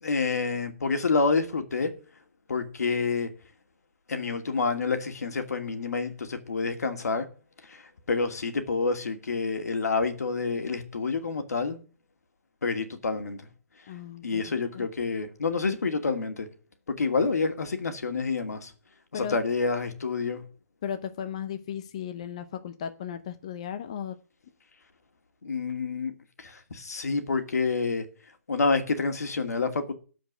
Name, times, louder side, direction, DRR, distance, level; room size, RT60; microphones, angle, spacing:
voice 1, 0.0-2.0 2.5-3.3 4.1-7.3 7.7-7.8 8.1-11.8 12.6-13.4 14.2-16.5 16.9-18.7 19.1-20.4 25.4-28.0 28.5-29.9, left 4 dB, 85° left, 2.4 m, -28 dB
voice 2, 13.9-14.9 19.1-19.4 20.8-24.1, left 8 dB, 25° left, 0.6 m, -36 dB
13.0 x 5.2 x 9.0 m
hypercardioid pair, 180°, 8 cm